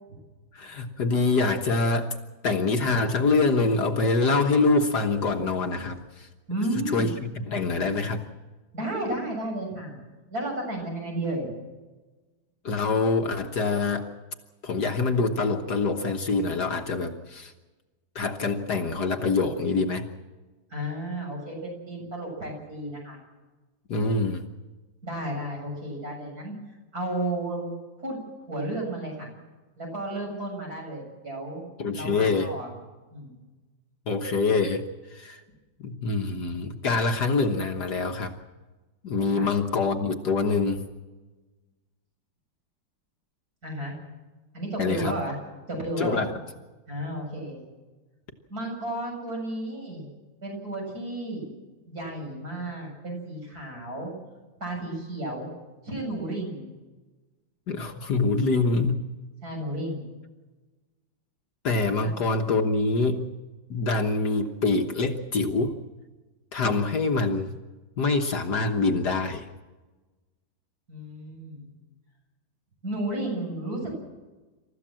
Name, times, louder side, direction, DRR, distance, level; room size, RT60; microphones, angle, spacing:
voice 1, 0.5-2.1 2.4-6.3 6.9-8.3 12.6-14.1 14.6-17.5 18.2-20.1 23.9-24.4 31.8-32.5 34.1-35.4 35.8-38.4 39.0-40.9 44.8-45.1 46.0-46.3 57.7-59.0 61.6-63.3 63.7-65.7 66.5-67.5 68.0-69.5, left 3 dB, 55° left, 5 dB, 1.8 m, -25 dB
voice 2, 6.5-7.2 8.7-10.0 10.3-11.5 20.7-23.2 25.0-26.6 26.9-27.7 28.0-28.2 28.5-29.3 29.8-31.7 31.9-32.7 33.1-33.3 39.4-39.5 43.6-44.0 44.5-45.4 45.7-46.3 46.9-47.7 48.5-50.1 50.4-51.4 51.9-54.1 54.6-55.5 55.8-56.7 59.4-60.1 70.9-71.7 72.8-74.0, right 1 dB, 45° right, 0 dB, 7.7 m, -32 dB
28.0 x 14.5 x 7.6 m, 1.2 s
omnidirectional pair, 2.2 m